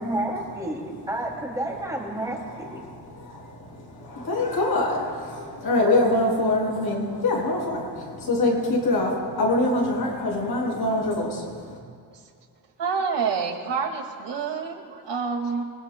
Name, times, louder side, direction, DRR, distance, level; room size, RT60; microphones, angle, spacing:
voice 1, 0.0-2.8, right 1 dB, 10° right, -2 dB, 2.6 m, -30 dB
voice 2, 2.6-11.8, left 2 dB, 65° left, -2 dB, 5.4 m, -25 dB
voice 3, 12.8-15.6, right 5 dB, 85° right, 3 dB, 2.1 m, -27 dB
27.0 x 21.5 x 2.2 m, 2.1 s
wide cardioid pair, 170°, 41 cm